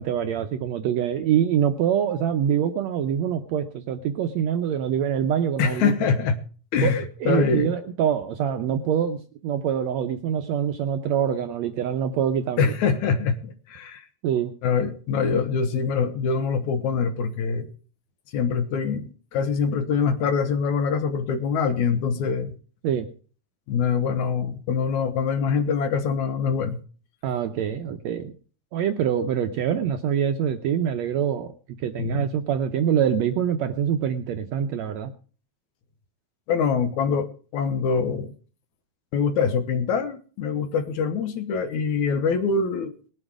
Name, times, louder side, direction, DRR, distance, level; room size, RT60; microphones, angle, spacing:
voice 1, 0.0-6.1 6.8-12.7 14.2-14.5 22.8-23.1 27.2-28.3 28.7-31.5 31.8-35.1, right 9 dB, 75° right, 7 dB, 1.7 m, -25 dB
voice 2, 5.6-6.4 6.7-7.7 12.6-14.1 14.6-17.7 18.3-22.5 23.7-26.8 32.0-32.3 36.5-38.3 39.1-42.9, left 5 dB, 70° left, 9 dB, 2.2 m, -24 dB
20.0 x 7.7 x 4.8 m, 0.40 s
omnidirectional pair, 3.8 m